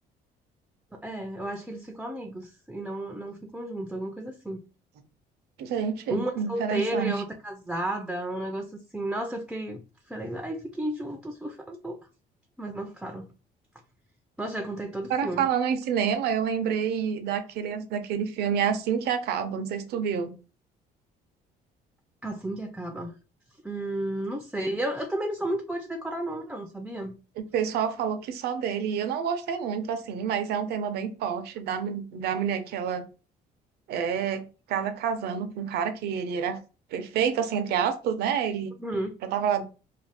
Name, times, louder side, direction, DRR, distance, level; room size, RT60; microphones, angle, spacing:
voice 1, 1.0-4.6 6.1-9.8 10.1-12.0 12.6-13.3 14.4-15.5 22.2-23.1 23.6-27.2 38.8-39.1, right 1 dB, 5° right, 0.3 m, -33 dB
voice 2, 5.6-7.2 15.1-20.3 27.4-33.0 33.9-36.6 36.9-38.7 39.2-39.6, right 7 dB, 75° right, 0.6 m, -28 dB
2.5 x 2.3 x 3.3 m
cardioid pair, 110°, 17 cm